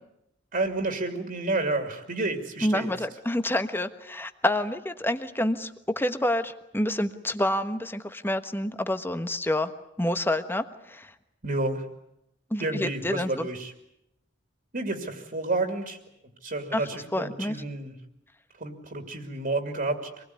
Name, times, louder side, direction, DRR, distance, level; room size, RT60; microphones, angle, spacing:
voice 1, 0.5-2.9 11.4-11.8 12.6-13.7 14.7-16.0 16.4-17.9 18.6-20.2, right 2 dB, 50° right, 5 dB, 2.7 m, -30 dB
voice 2, 2.6-9.7 10.0-11.1 12.5-13.5 16.7-16.8 17.1-17.6, left 1 dB, 10° left, 9 dB, 1.2 m, -28 dB
26.0 x 20.0 x 9.5 m, 0.85 s
head